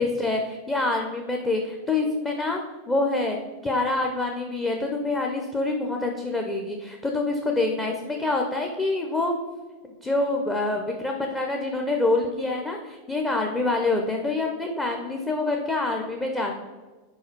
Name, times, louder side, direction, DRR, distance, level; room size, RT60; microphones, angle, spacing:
voice 1, 0.0-2.6 2.9-3.4 3.6-9.4 10.0-16.5, left 2 dB, 10° left, 1 dB, 0.6 m, -26 dB
4.8 x 4.6 x 4.4 m, 1.3 s
figure-of-eight pair, 90°, 0 cm